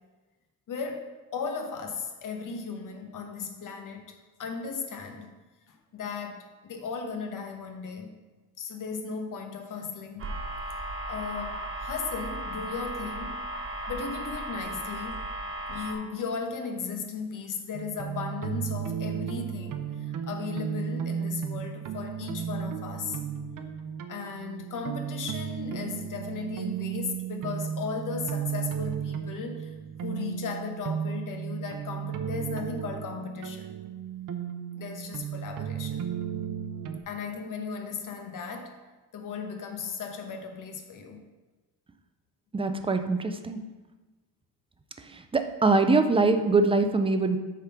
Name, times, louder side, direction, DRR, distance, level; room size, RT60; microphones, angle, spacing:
voice 1, 0.7-5.3 5.7-8.2 8.6-10.4 11.1-13.4 13.9-15.2 15.7-23.2 24.1-29.7 30.0-33.7 34.7-36.0 37.1-38.8 39.1-41.2, left 5 dB, 60° left, 5 dB, 1.0 m, -36 dB
sound 1, 10.2-15.9, right 1 dB, 35° right, 1.2 m, -35 dB
sound 2, 17.7-37.0, right 8 dB, 60° right, 0.7 m, -34 dB
voice 2, 42.5-43.6 45.3-47.4, right 3 dB, 15° right, 8 dB, 0.4 m, -23 dB
7.8 x 3.7 x 5.7 m, 1.2 s
cardioid pair, 150°, 36 cm